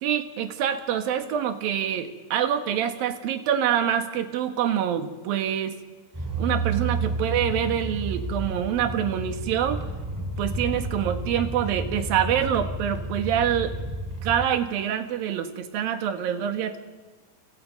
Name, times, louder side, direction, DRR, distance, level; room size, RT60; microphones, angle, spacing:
voice 1, 0.0-5.8 6.4-9.9 10.4-13.7 14.2-16.8, right 9 dB, 85° right, 8 dB, 3.4 m, -26 dB
sound 1, 6.1-14.4, right 2 dB, 5° right, 3.0 m, -31 dB
29.5 x 25.5 x 5.3 m, 1.4 s
omnidirectional pair, 4.0 m